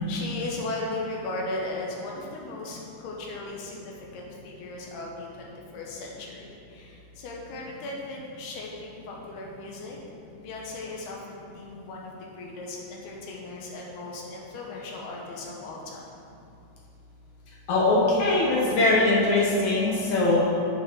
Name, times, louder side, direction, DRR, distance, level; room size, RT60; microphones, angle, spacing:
voice 1, 0.1-10.0 10.4-16.0, left 2 dB, 70° left, -2 dB, 2.6 m, -37 dB
voice 2, 17.7-20.5, left 2 dB, 85° left, -5 dB, 1.6 m, -21 dB
8.4 x 7.6 x 6.3 m, 2.8 s
omnidirectional pair, 5.6 m